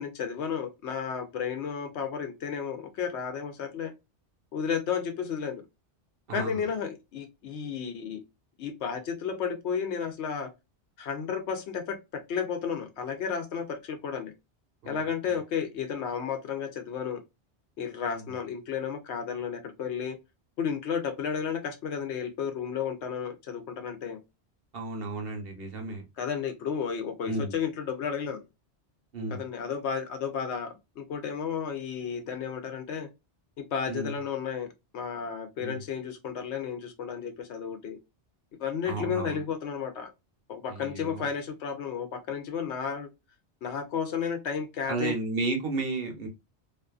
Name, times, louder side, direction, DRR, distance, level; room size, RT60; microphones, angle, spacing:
voice 1, 0.0-3.9 4.5-5.6 6.3-8.2 8.6-10.5 11.0-14.3 14.9-17.2 17.8-20.2 20.6-24.2 26.2-28.4 29.3-33.1 33.6-34.7 34.9-38.0 38.6-40.1 40.5-43.1 43.6-45.1, left 7 dB, 75° left, 0.9 m, -32 dB
voice 2, 6.3-6.6 14.8-15.0 18.0-18.3 24.7-26.0 27.3-27.5 29.1-29.4 33.9-34.2 35.6-35.8 38.9-39.4 40.7-41.3 44.9-46.3, right 3 dB, 60° right, 0.9 m, -33 dB
2.6 x 2.4 x 2.3 m
omnidirectional pair, 1.2 m